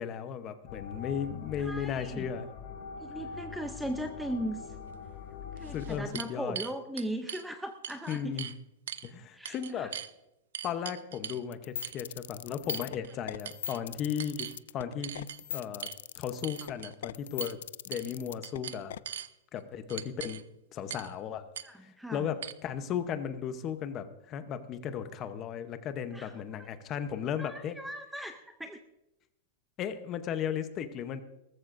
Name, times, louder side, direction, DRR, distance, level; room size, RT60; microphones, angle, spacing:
voice 1, 0.0-2.5 5.7-6.6 8.1-8.5 9.0-9.9 10.6-14.5 14.7-15.9 16.2-17.6 17.9-18.9 19.5-20.4 20.7-21.4 21.8-27.8 29.8-31.2, left 8 dB, 25° left, 10 dB, 0.8 m, -35 dB
sound 1, 0.7-6.0, left 6 dB, 45° left, 2.4 m, -43 dB
voice 2, 1.6-2.3 3.0-4.7 5.6-8.3 9.3-9.9 21.6-22.3 26.1-26.7 27.4-28.8, equal, ahead, 7 dB, 0.5 m, -38 dB
sound 2, 4.9-5.0 5.6-7.4 7.8-8.6 8.9-9.1 9.4-10.1 10.5-11.4 11.8-12.0 12.7-13.2 13.4-13.8 14.2-14.6 15.0-15.4 15.8-16.0 16.4-16.9 17.4-17.6 17.9-18.1 18.4-19.3 19.9-20.4 20.9-21.1 21.5-21.7 22.4-22.5, right 9 dB, 85° right, 0.6 m, -40 dB
sound 3, 11.5-19.0, left 10 dB, 80° left, 0.3 m, -40 dB
19.0 x 14.0 x 2.6 m, 0.91 s
supercardioid pair, 170°, 0 cm